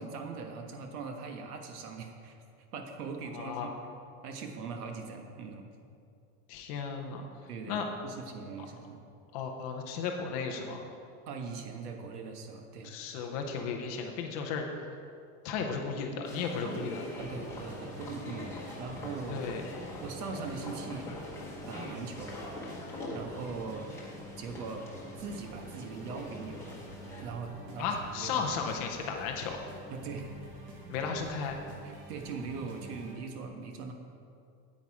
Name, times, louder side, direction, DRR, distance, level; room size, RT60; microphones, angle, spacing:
voice 1, 0.0-2.4 2.7-3.8 4.2-5.7 7.5-9.0 11.3-12.9 16.6-19.5 20.0-21.1 21.7-22.4 23.1-24.0 24.4-24.9 25.2-26.8 27.2-28.4 29.9-30.3 31.8-33.9, right 4 dB, 85° right, 4 dB, 1.4 m, -41 dB
voice 2, 3.3-3.7 6.5-7.2 7.7-7.9 9.3-10.8 12.8-14.9 15.4-17.0 19.3-19.6 27.8-29.6 30.9-31.6, left 5 dB, 25° left, 2 dB, 0.4 m, -34 dB
sound 1, 16.2-27.2, left 1 dB, 5° left, 1.1 m, -43 dB
sound 2, 17.2-33.1, right 1 dB, 35° right, 1.6 m, -49 dB
9.0 x 8.4 x 4.7 m, 2.5 s
supercardioid pair, 170°, 45 cm